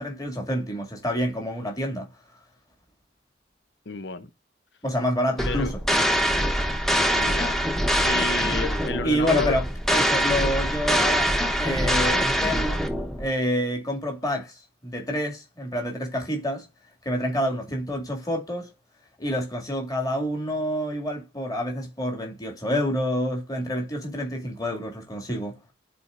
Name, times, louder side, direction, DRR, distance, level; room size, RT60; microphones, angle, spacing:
voice 1, 0.0-2.1 4.8-5.8 9.0-12.8 13.2-16.6 17.0-18.7 19.2-25.6, equal, 20° left, 2.2 m, -28 dB
voice 2, 3.9-4.3 5.4-5.7 7.1-7.6 8.0-9.6, left 4 dB, 75° left, 0.7 m, -31 dB
sound 1, 5.4-13.3, equal, ahead, 0.9 m, -24 dB
11.5 x 4.3 x 2.5 m
head